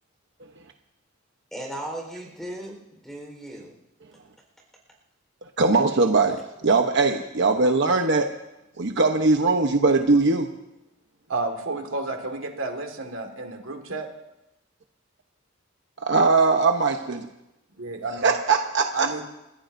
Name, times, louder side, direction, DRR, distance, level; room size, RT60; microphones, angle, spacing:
voice 1, 1.5-3.7, right 1 dB, ahead, 1 dB, 4.3 m, -36 dB
voice 2, 5.6-8.3 8.8-10.5 16.0-17.3 18.2-19.1, right 3 dB, 60° right, 4 dB, 1.0 m, -20 dB
voice 3, 11.3-14.1 17.8-18.3 18.9-19.2, right 3 dB, 90° right, 4 dB, 2.0 m, -31 dB
30.0 x 15.0 x 2.7 m, 0.91 s
head